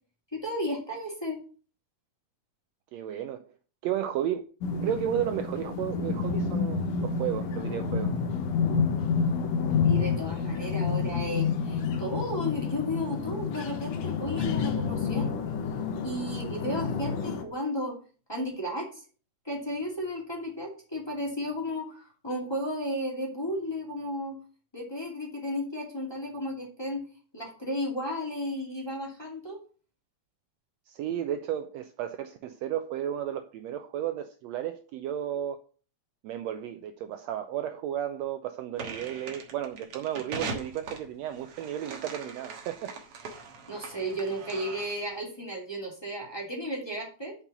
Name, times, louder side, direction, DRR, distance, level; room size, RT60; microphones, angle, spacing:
voice 1, 0.3-1.4 9.8-15.4 16.0-18.0 18.3-19.0 19.4-24.4 24.7-27.0 27.3-29.6 43.7-47.4, equal, 10° left, 2.3 m, -34 dB
voice 2, 2.9-3.5 3.8-4.4 4.7-8.1 30.9-35.6 36.2-42.9, right 10 dB, 80° right, 1.6 m, -33 dB
sound 1, 4.6-17.4, left 5 dB, 85° left, 2.6 m, -29 dB
sound 2, 38.8-45.1, right 4 dB, 55° right, 2.1 m, -41 dB
7.2 x 5.5 x 6.8 m
omnidirectional pair, 3.5 m